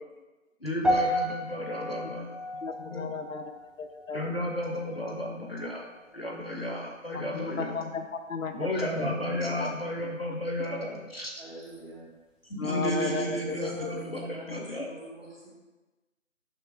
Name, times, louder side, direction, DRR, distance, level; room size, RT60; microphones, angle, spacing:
voice 1, 0.6-3.1 4.1-7.7 8.5-11.3 12.5-14.9, equal, 50° left, -1 dB, 0.7 m, -33 dB
sound 1, 0.8-5.2 5.5-5.9 6.5-6.6, equal, ahead, 0.3 m, -33 dB
voice 2, 2.5-3.5 3.8-4.2 7.1-8.9 9.6-9.7 12.6-14.0 14.3-14.4, left 5 dB, 80° left, 6 dB, 0.6 m, -34 dB
voice 3, 11.4-12.1 13.5-15.5, right 1 dB, 45° right, -7 dB, 1.5 m, -45 dB
6.1 x 2.7 x 2.4 m, 1.2 s
figure-of-eight pair, 175°, 40 cm